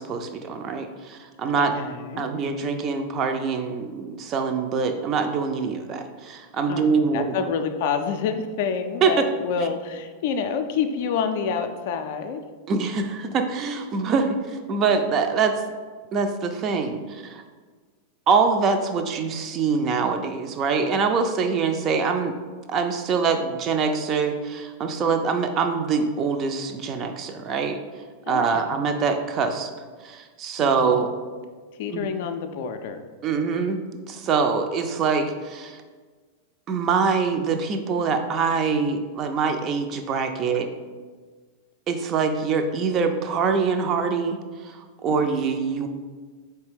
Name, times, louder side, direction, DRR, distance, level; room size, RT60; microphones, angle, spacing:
voice 1, 0.0-1.7 2.2-7.3 9.0-9.3 12.7-15.5 16.1-17.4 18.3-22.4 22.7-27.8 28.3-29.7 30.0-31.1 31.9-32.1 33.2-33.8 34.1-35.8 36.7-40.7 41.9-45.9, right 5 dB, 30° right, 6 dB, 0.4 m, -24 dB
voice 2, 1.6-2.3 6.7-12.4 28.3-28.7 30.6-31.1 31.8-33.0 45.1-45.5, left 6 dB, 50° left, 7 dB, 0.3 m, -28 dB
4.4 x 3.2 x 3.3 m, 1.5 s
figure-of-eight pair, 90°, 0 cm